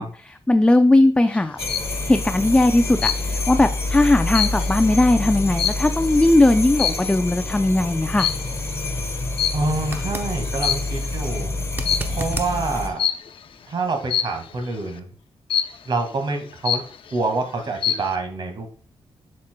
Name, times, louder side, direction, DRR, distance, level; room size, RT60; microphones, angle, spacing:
voice 1, 0.0-1.6 1.9-8.3, left 2 dB, 10° left, 8 dB, 0.4 m, -18 dB
sound 1, 1.3-1.9 3.0-3.5 3.9-6.2 6.7-7.2 8.2-8.6 9.4-10.0 10.5-11.1 11.8-12.2 13.0-13.4 14.1-14.5 15.5-16.0 16.4-16.5 16.6-17.2 17.6-18.1, left 9 dB, 70° left, 0.6 m, -25 dB
sound 2, 1.6-12.9, left 2 dB, 30° left, 1.0 m, -27 dB
voice 2, 9.5-11.5 12.1-13.0 13.7-15.1 15.9-16.8 17.1-18.7, right 3 dB, 55° right, 5 dB, 1.8 m, -26 dB
sound 3, 9.8-10.3 11.7-12.5 15.5-15.6, right 2 dB, 20° right, 0.9 m, -31 dB
7.5 x 7.3 x 2.2 m, 0.43 s
wide cardioid pair, 110°, 9 cm